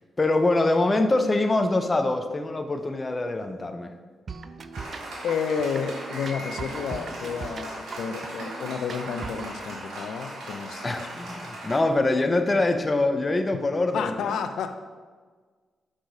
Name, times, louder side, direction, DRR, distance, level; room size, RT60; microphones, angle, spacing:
voice 1, 0.2-3.9 10.8-14.4, left 2 dB, 20° left, 6 dB, 0.5 m, -24 dB
sound 1, 4.3-9.5, right 5 dB, 45° right, 0.3 m, -40 dB
Applause, 4.7-11.8, right 1 dB, 85° right, 2.3 m, -38 dB
voice 2, 5.2-11.1 13.9-14.8, left 6 dB, 85° left, 8 dB, 0.5 m, -31 dB
6.4 x 4.9 x 4.9 m, 1.5 s
cardioid pair, 120°, 0 cm